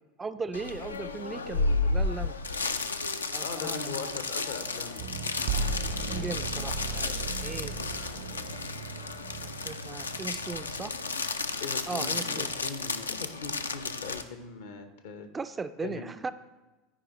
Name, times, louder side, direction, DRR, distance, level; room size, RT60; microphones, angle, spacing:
voice 1, 0.2-2.3 3.3-3.8 5.5-5.7 6.1-8.1 9.6-10.9 11.9-12.5 15.3-16.3, right 4 dB, 20° right, 11 dB, 0.3 m, -38 dB
sound 1, 0.5-14.2, left 3 dB, 85° left, 0.4 m, -33 dB
voice 2, 3.4-5.0 5.6-6.3 11.6-15.3 15.8-16.3, left 4 dB, 70° left, 9 dB, 0.7 m, -40 dB
sound 2, 5.0-11.2, right 4 dB, 60° right, 0.6 m, -36 dB
12.5 x 4.9 x 3.0 m, 1.2 s
figure-of-eight pair, 75°, 0 cm